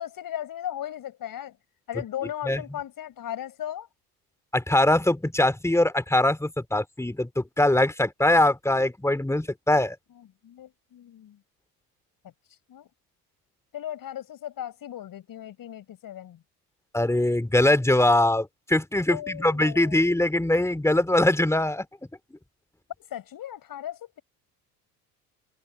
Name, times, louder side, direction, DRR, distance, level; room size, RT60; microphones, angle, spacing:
voice 1, 0.0-1.6 1.9-3.9 10.1-11.4 12.7-12.9 13.7-16.4 19.1-20.0 23.1-24.2, left 11 dB, 45° left, 5.8 m, -37 dB
voice 2, 4.5-10.0 16.9-21.9, left 1 dB, 5° left, 3.4 m, -22 dB
figure-of-eight pair, 60°, 47 cm